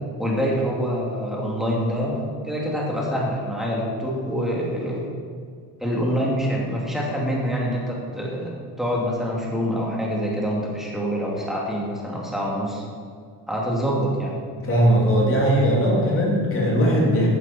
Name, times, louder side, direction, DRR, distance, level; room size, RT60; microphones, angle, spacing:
voice 1, 0.2-5.1 5.8-8.5 8.8-12.8 13.5-14.4, equal, ahead, -4 dB, 2.8 m, -25 dB
voice 2, 14.6-17.3, equal, 35° left, -3 dB, 3.0 m, -19 dB
15.0 x 12.0 x 4.6 m, 2.1 s
cardioid pair, 165°, 39 cm